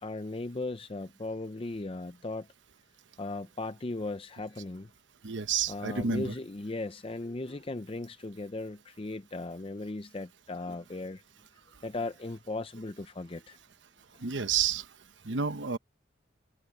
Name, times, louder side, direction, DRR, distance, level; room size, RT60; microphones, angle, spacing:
voice 1, 0.0-2.5 3.2-4.9 5.7-11.2 11.8-13.6, left 2 dB, 30° left, 0.6 m, -37 dB
voice 2, 5.2-6.3 14.2-14.8 15.3-15.8, right 6 dB, 75° right, 1.0 m, -29 dB
head